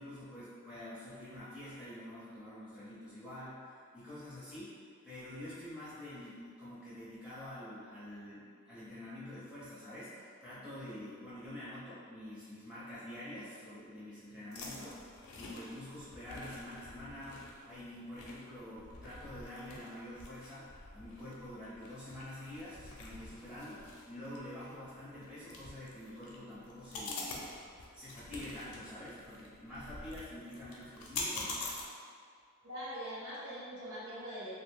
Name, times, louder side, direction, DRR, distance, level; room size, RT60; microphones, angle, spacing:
voice 1, 0.0-4.8 5.0-15.0 15.3-27.4 27.9-31.6, left 1 dB, 5° right, -12 dB, 0.6 m, -47 dB
sound 1, 14.5-31.8, left 2 dB, 80° left, 0.5 m, -46 dB
voice 2, 32.6-34.5, equal, 60° right, -9 dB, 1.0 m, -42 dB
2.8 x 2.0 x 3.3 m, 2.1 s
head